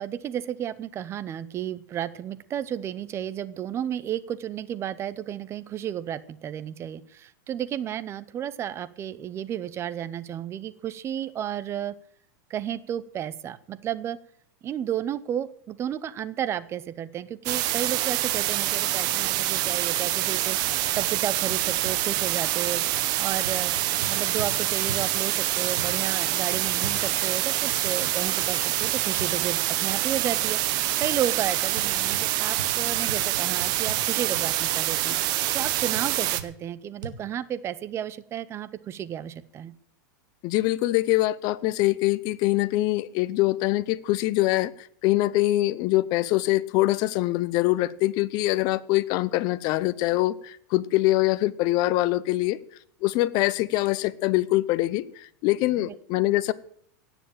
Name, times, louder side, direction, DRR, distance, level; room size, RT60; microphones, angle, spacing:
voice 1, 0.0-11.9 12.5-14.2 14.6-20.6 21.0-22.8 23.2-23.7 24.1-35.2 35.5-39.7 55.8-55.9, right 10 dB, 25° right, 17 dB, 0.8 m, -32 dB
sound 1, 17.5-36.4, right 15 dB, 40° right, 1.1 m, -26 dB
sound 2, 20.9-21.1 21.5-22.3 22.9-23.1 23.4-24.5 24.9-25.1 25.8-25.9 26.5-28.1 28.4-28.5 28.8-29.3 29.9-30.0 31.0-31.2 31.8-32.2 32.6-34.0 34.3-34.4 34.9-35.1 35.6-36.1 36.4-36.5 37.0-37.1, right 5 dB, 85° right, 2.0 m, -39 dB
voice 2, 40.4-52.6 53.0-56.5, left 17 dB, 40° left, 15 dB, 0.8 m, -24 dB
17.5 x 7.1 x 9.0 m, 0.62 s
supercardioid pair, 140°, 10 cm